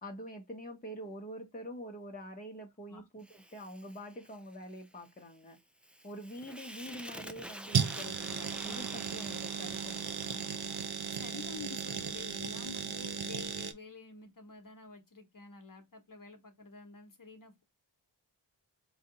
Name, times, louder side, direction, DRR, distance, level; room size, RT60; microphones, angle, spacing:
voice 1, 0.0-5.6 6.0-10.4, equal, 20° left, 0.8 m, -46 dB
Fire, 3.2-12.4, equal, 5° right, 0.3 m, -50 dB
sound 1, 7.7-13.7, right 6 dB, 55° right, 0.6 m, -35 dB
voice 2, 11.1-17.6, left 4 dB, 45° left, 1.0 m, -49 dB
3.9 x 2.8 x 3.7 m
wide cardioid pair, 80°, 45 cm